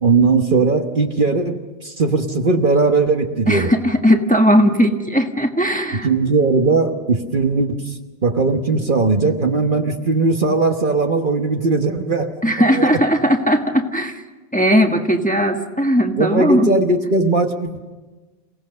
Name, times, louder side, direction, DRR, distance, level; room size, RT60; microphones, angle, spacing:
voice 1, 0.0-3.7 6.0-13.0 16.2-17.9, right 3 dB, 45° right, 5 dB, 1.4 m, -18 dB
voice 2, 3.5-6.1 12.4-14.2 14.5-16.7, equal, 5° left, 4 dB, 1.4 m, -17 dB
28.5 x 17.5 x 6.6 m, 1.2 s
omnidirectional pair, 1.2 m